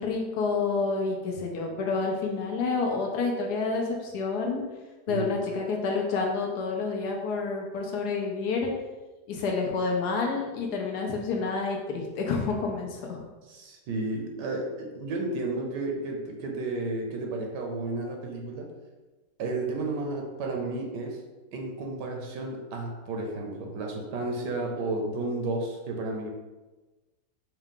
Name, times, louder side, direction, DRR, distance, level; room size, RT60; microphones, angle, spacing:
voice 1, 0.0-4.6 5.1-8.7 9.3-13.2, left 4 dB, 75° left, 0 dB, 1.1 m, -29 dB
voice 2, 5.1-5.5 13.5-18.7 19.4-21.2 21.5-26.3, right 2 dB, 80° right, 1 dB, 1.3 m, -32 dB
4.5 x 2.3 x 3.6 m, 1.2 s
omnidirectional pair, 1.8 m